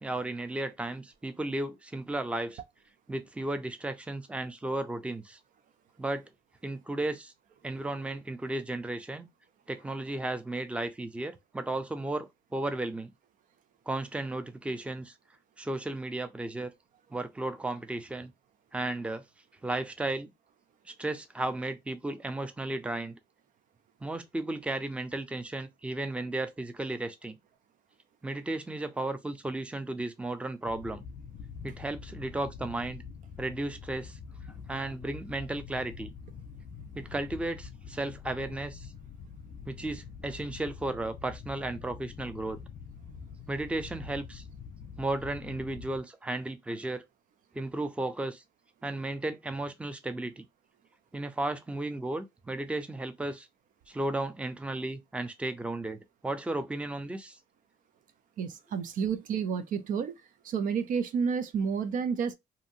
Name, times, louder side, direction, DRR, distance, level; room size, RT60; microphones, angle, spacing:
voice 1, 0.0-2.6 3.1-5.4 6.0-6.2 6.6-7.3 7.6-9.3 9.7-13.1 13.9-15.1 15.6-16.7 17.1-18.3 18.7-19.2 19.6-20.3 20.9-23.2 24.0-27.4 28.2-31.0 31.6-33.0 33.4-34.2 34.7-36.1 37.0-38.9 39.7-42.6 43.5-44.4 45.0-47.0 47.5-48.4 48.8-50.5 51.1-53.5 53.9-57.4, right 2 dB, 10° right, 0.5 m, -34 dB
sound 1, 30.6-46.0, left 6 dB, 60° left, 0.5 m, -45 dB
voice 2, 58.4-60.2 60.4-62.3, right 6 dB, 60° right, 0.5 m, -30 dB
2.7 x 2.7 x 2.6 m
cardioid pair, 95°, 16 cm